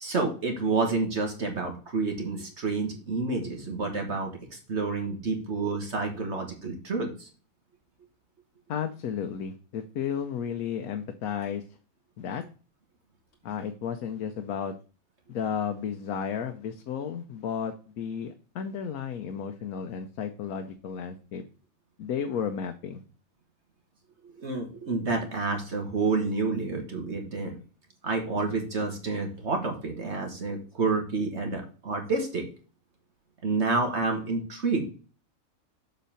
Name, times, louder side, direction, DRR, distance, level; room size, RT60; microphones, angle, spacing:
voice 1, 0.0-7.3 24.4-27.6 28.0-32.4 33.4-34.9, right 3 dB, 55° right, 3 dB, 1.7 m, -29 dB
voice 2, 8.7-11.6 12.2-12.4 13.4-14.7 15.3-21.4 22.0-23.0, left 7 dB, 80° left, 7 dB, 1.2 m, -33 dB
7.3 x 4.2 x 5.6 m, 0.37 s
omnidirectional pair, 1.5 m